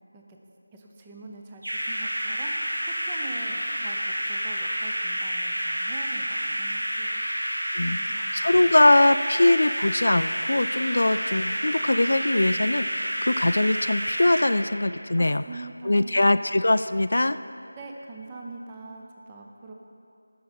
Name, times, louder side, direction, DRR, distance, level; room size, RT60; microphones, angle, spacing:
voice 1, 0.7-2.5 2.9-7.2 7.9-8.8 15.2-16.2 17.8-19.7, right 2 dB, 15° right, 0 dB, 0.7 m, -43 dB
sound 1, 1.6-14.5, equal, 70° right, 1.7 m, -29 dB
voice 2, 7.7-15.4 15.8-17.4, left 2 dB, 65° left, 12 dB, 0.3 m, -22 dB
16.0 x 6.4 x 4.4 m, 2.7 s
figure-of-eight pair, 165°, 0 cm